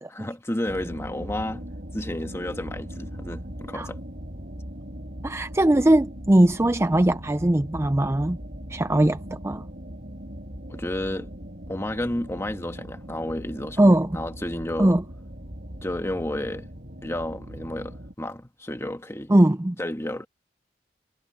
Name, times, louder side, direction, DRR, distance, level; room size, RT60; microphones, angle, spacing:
voice 1, 0.1-1.6 1.9-4.0 10.7-11.3 11.7-13.8 14.1-14.9 15.8-16.7 17.0-19.3 19.8-20.3, left 1 dB, 15° left, 1.5 m, -31 dB
sound 1, 0.7-18.1, equal, 55° right, 5.4 m, -39 dB
voice 2, 5.2-8.4 8.7-9.7 13.8-14.2 14.8-15.0 19.3-19.8, right 1 dB, 15° right, 0.5 m, -20 dB
head